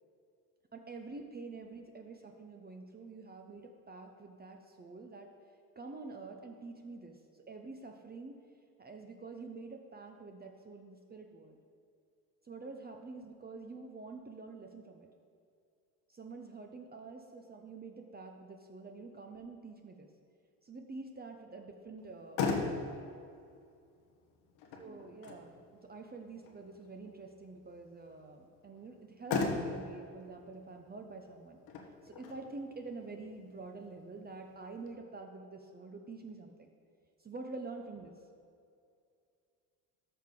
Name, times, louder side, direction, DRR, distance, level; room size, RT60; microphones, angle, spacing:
voice 1, 0.7-5.3 5.8-8.4 8.8-11.6 12.4-15.1 16.1-20.1 20.6-22.7 24.8-31.6 32.0-36.7 37.2-38.2, right 3 dB, 25° right, 3 dB, 0.8 m, -47 dB
Motor vehicle (road), 22.0-34.9, left 4 dB, 85° left, 1.3 m, -41 dB
13.5 x 5.8 x 3.8 m, 2.4 s
supercardioid pair, 80°, 41 cm